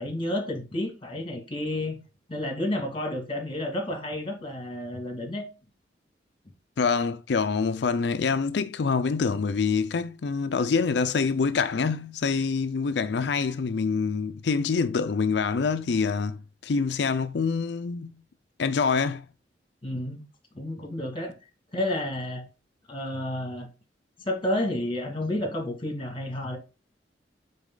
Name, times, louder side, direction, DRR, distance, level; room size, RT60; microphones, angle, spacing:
voice 1, 0.0-2.0 2.3-5.4 19.8-20.2 20.6-21.3 21.7-22.5 22.9-23.7 24.2-26.6, left 1 dB, 30° left, 2.0 m, -30 dB
voice 2, 6.8-18.1 18.6-19.3, left 5 dB, 65° left, 0.4 m, -26 dB
8.5 x 4.1 x 3.8 m
head